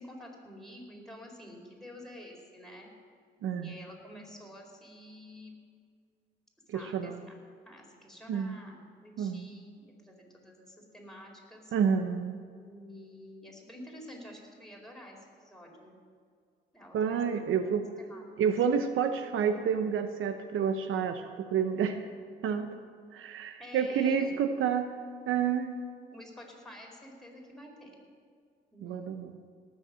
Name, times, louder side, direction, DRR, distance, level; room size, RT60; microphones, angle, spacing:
voice 1, 0.0-2.9 3.6-5.6 6.7-7.4 7.6-11.7 12.6-16.0 16.7-18.3 23.6-24.3 26.1-28.0 28.7-29.2, left 1 dB, ahead, -1 dB, 4.7 m, -49 dB
voice 2, 3.4-3.7 6.7-7.2 8.3-8.6 9.2-9.5 11.7-12.4 16.9-17.8 18.4-22.0 22.4-22.7 23.1-24.9 25.3-25.8 28.8-29.4, right 7 dB, 75° right, 9 dB, 0.8 m, -29 dB
18.0 x 7.2 x 7.6 m, 2.1 s
supercardioid pair, 55°, 21 cm